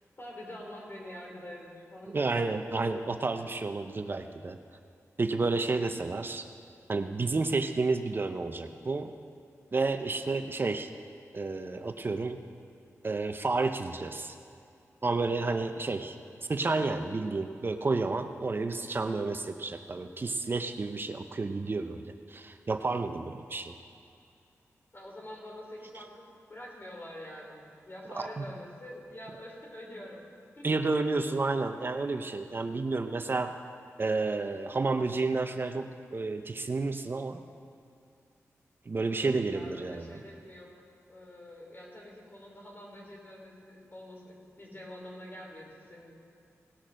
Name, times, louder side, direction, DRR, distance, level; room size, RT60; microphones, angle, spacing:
voice 1, 0.2-2.2 2.5-2.6 3.3-3.4 24.9-30.2 30.6-31.0 38.9-40.7 41.1-46.1, left 1 dB, 40° left, -2 dB, 3.5 m, -46 dB
voice 2, 2.1-4.6 5.2-6.4 6.9-9.1 9.7-10.9 11.3-12.4 13.0-14.4 15.0-16.2 16.5-23.7 28.1-28.4 30.6-33.5 34.0-37.4 38.9-40.2, right 3 dB, 40° right, 7 dB, 0.6 m, -31 dB
18.0 x 6.4 x 6.3 m, 2.5 s
wide cardioid pair, 75°, 5 cm